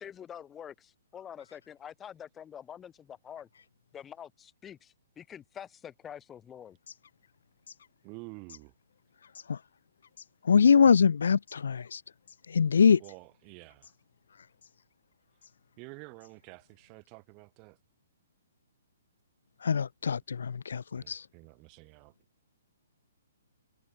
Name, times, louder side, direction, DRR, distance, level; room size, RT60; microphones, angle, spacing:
voice 1, 0.0-3.5 3.9-6.8, left 9 dB, 10° left, 1.6 m, -46 dB
sound 1, 6.6-16.9, left 7 dB, 60° left, 6.1 m, -59 dB
voice 2, 8.0-8.7 13.0-13.9 15.8-17.8 20.9-22.1, right 33 dB, 20° right, 3.0 m, -49 dB
voice 3, 10.4-12.0 12.5-13.0 19.6-21.3, left 6 dB, 75° left, 0.3 m, -23 dB
hypercardioid pair, 175°, 0 cm